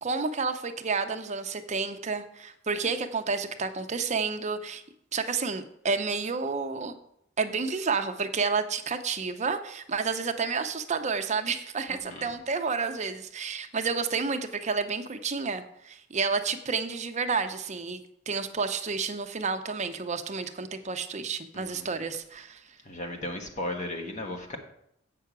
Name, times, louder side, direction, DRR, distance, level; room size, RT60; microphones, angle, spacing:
voice 1, 0.0-4.8 5.1-6.9 7.4-18.0 18.3-22.6, right 4 dB, 35° right, 7 dB, 0.7 m, -30 dB
voice 2, 11.9-12.3 21.5-21.8 22.8-24.6, left 1 dB, 40° left, 3 dB, 1.4 m, -36 dB
8.4 x 5.9 x 6.0 m, 0.72 s
head